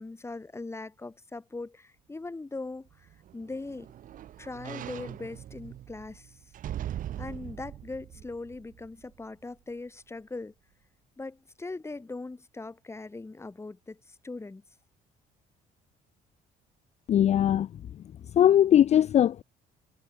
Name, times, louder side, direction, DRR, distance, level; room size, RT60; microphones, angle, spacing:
voice 1, 0.0-3.9 4.4-6.4 7.2-10.5 11.2-14.6, left 3 dB, 15° left, 2.5 m, -40 dB
sound 1, 2.9-9.3 9.7-9.8, right 11 dB, 55° right, 0.8 m, -41 dB
voice 2, 17.1-17.7 18.3-19.4, left 10 dB, 40° left, 0.4 m, -20 dB
cardioid pair, 110°, 17 cm